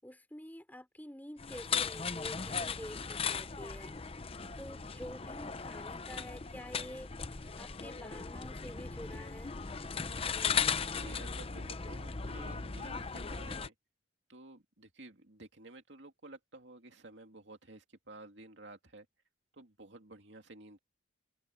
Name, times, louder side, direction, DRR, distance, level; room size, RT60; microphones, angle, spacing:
voice 1, 0.0-4.0 4.6-7.1 7.6-9.5, equal, 10° left, 5.6 m, -48 dB
sound 1, 1.4-13.7, left 6 dB, 30° left, 0.7 m, -37 dB
voice 2, 10.8-13.7 14.3-19.1 19.5-20.8, right 2 dB, 65° right, 2.6 m, -53 dB
head